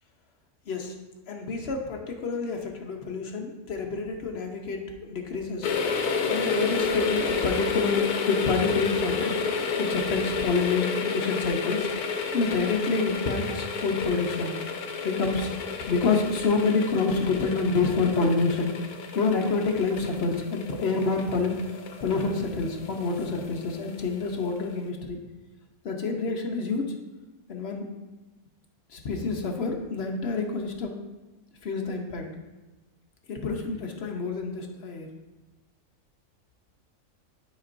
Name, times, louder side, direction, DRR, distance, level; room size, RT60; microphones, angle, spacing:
voice 1, 1.3-5.7 6.3-9.3 9.8-11.9 12.3-14.5 15.0-15.5 15.9-18.7 19.1-25.2 25.8-26.9 27.5-27.9 28.9-30.9 31.6-32.3 33.3-35.1, left 4 dB, 50° left, 3 dB, 0.9 m, -27 dB
sound 1, 5.6-24.3 24.6-24.7, left 5 dB, 90° left, 1.2 m, -31 dB
10.5 x 5.2 x 2.5 m, 1.2 s
omnidirectional pair, 1.6 m